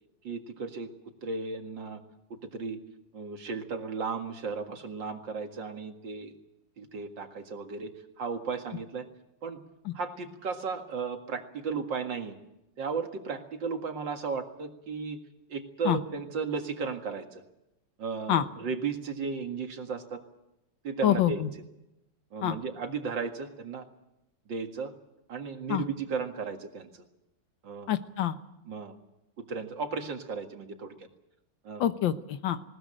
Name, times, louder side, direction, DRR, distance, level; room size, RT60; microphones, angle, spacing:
voice 1, 0.2-0.9 1.2-2.0 2.3-2.8 3.1-6.3 6.8-7.9 8.2-9.1 9.4-9.6 9.9-12.4 12.8-15.2 15.5-17.4 18.0-20.2 20.8-21.4 22.3-23.8 24.5-24.9 25.3-27.0 27.6-27.9 28.7-28.9 29.4-31.1 31.6-31.9, right 5 dB, 75° right, 5 dB, 2.6 m, -35 dB
voice 2, 21.0-21.5 22.4-22.6 25.7-25.8 27.9-28.4 31.8-32.6, left 11 dB, 80° left, 11 dB, 1.8 m, -26 dB
20.0 x 19.0 x 8.9 m, 0.89 s
omnidirectional pair, 2.0 m